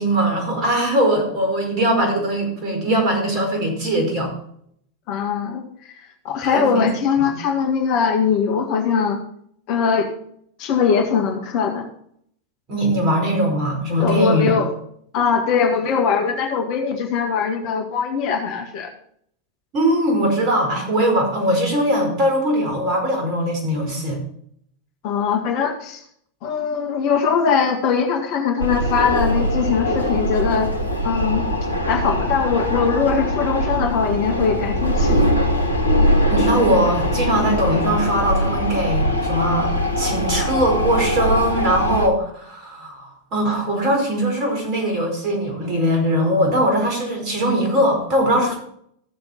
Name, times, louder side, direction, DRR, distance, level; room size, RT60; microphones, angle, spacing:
voice 1, 0.0-4.3 6.4-6.7 7.2-7.3 12.7-14.5 19.7-24.2 36.0-48.5, right 1 dB, 35° right, 2 dB, 4.7 m, -21 dB
voice 2, 5.1-5.6 6.0-9.2 9.7-10.1 10.6-11.9 14.0-14.7 15.1-18.9 25.0-26.0 26.4-30.7 31.0-31.5 31.9-35.2 48.4-48.5, left 6 dB, 45° left, 3 dB, 1.8 m, -21 dB
sound 1, 28.6-42.1, equal, 85° left, 1.3 m, -21 dB
15.5 x 6.9 x 4.3 m, 0.67 s
figure-of-eight pair, 90°, 0 cm